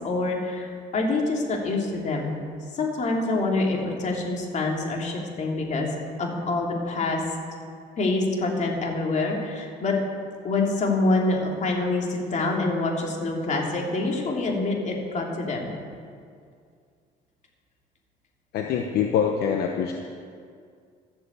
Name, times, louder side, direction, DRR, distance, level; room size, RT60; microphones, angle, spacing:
voice 1, 0.0-2.4 2.7-5.9 6.2-7.2 8.0-10.0 10.4-15.7, left 2 dB, 45° left, 0 dB, 2.9 m, -26 dB
voice 2, 18.5-19.9, left 8 dB, 70° left, 3 dB, 1.0 m, -24 dB
13.0 x 7.8 x 8.2 m, 2.2 s
cardioid pair, 110°, 17 cm